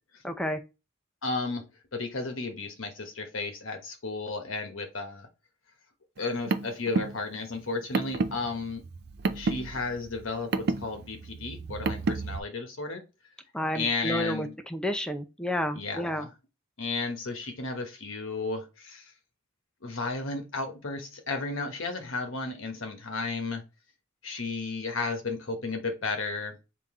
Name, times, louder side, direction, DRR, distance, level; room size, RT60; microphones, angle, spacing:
voice 1, 0.2-0.6 13.5-16.3, equal, 5° left, 0.6 m, -31 dB
voice 2, 1.2-1.6 1.9-5.3 6.2-8.8 9.3-13.0 13.7-14.5 15.7-16.3 16.8-19.1 19.8-23.6 24.2-26.5, left 3 dB, 75° left, 1.2 m, -33 dB
Car, 6.2-12.4, right 3 dB, 55° right, 0.4 m, -31 dB
3.8 x 2.8 x 4.8 m
head